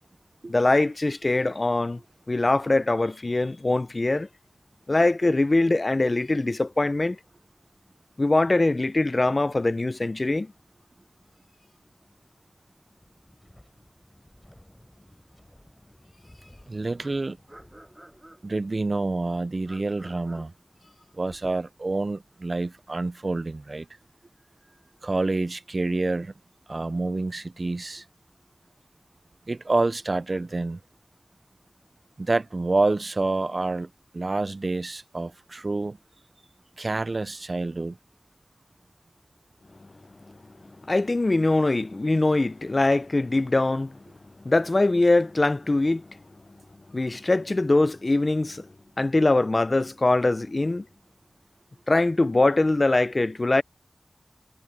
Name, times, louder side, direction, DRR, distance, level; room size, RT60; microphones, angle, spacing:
voice 1, 0.5-2.0 2.3-4.3 4.9-7.2 8.2-10.5 40.3-40.4 40.8-44.0 44.4-46.1 46.9-48.7 49.0-50.9 51.9-53.6, left 2 dB, 45° left, 0.5 m, -22 dB
sound 1, 11.8-11.9 12.2-12.3 14.5-14.6 16.4-16.5 17.0-18.7 19.6-21.6 21.9-22.0 22.8-25.1, right 1 dB, 20° right, 5.8 m, -53 dB
Wind, 13.0-18.6, left 1 dB, 15° left, 6.9 m, -56 dB
voice 2, 16.7-17.4 18.4-20.5 21.1-23.9 25.0-26.3 26.7-28.0 29.5-30.8 32.2-36.0 36.8-38.0, right 2 dB, 55° right, 0.4 m, -28 dB
wide cardioid pair, 70°, 0 cm